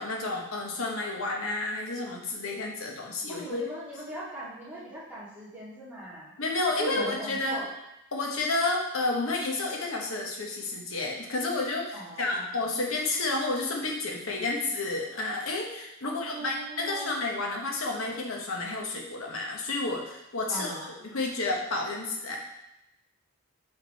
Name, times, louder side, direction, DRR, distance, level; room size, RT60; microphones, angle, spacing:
voice 1, 0.0-3.6 6.4-7.6 8.1-22.4, left 2 dB, 70° left, 0 dB, 1.0 m, -31 dB
voice 2, 3.3-6.3 6.8-7.7 11.9-12.5 16.0-17.1 20.5-20.9, right 1 dB, 5° right, -9 dB, 1.9 m, -40 dB
5.0 x 4.7 x 4.1 m, 0.87 s
head